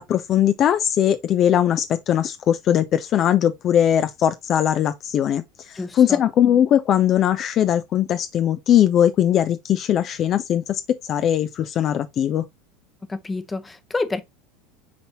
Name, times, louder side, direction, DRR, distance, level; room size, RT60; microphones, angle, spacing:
voice 1, 0.0-12.4, left 10 dB, 40° left, 0.5 m, -20 dB
voice 2, 5.7-6.2 13.1-14.2, left 3 dB, 15° left, 0.9 m, -28 dB
9.3 x 4.1 x 2.9 m
figure-of-eight pair, 75°, 0 cm